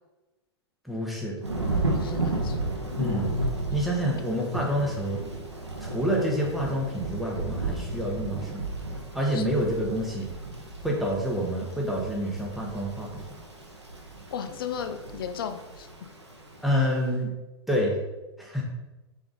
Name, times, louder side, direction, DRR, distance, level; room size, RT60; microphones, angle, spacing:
voice 1, 0.8-1.3 3.0-3.3 3.7-5.2 5.8-8.7 9.1-10.3 10.8-13.3 16.6-17.3 17.7-17.9 18.4-18.6, equal, ahead, -3 dB, 0.9 m, -27 dB
Thunder / Rain, 1.4-17.0, right 2 dB, 85° right, 0.8 m, -34 dB
voice 2, 1.9-2.6 9.3-9.4 14.3-15.9, left 7 dB, 55° left, 9 dB, 0.4 m, -35 dB
3.7 x 3.4 x 3.8 m, 1.1 s
figure-of-eight pair, 100°, 14 cm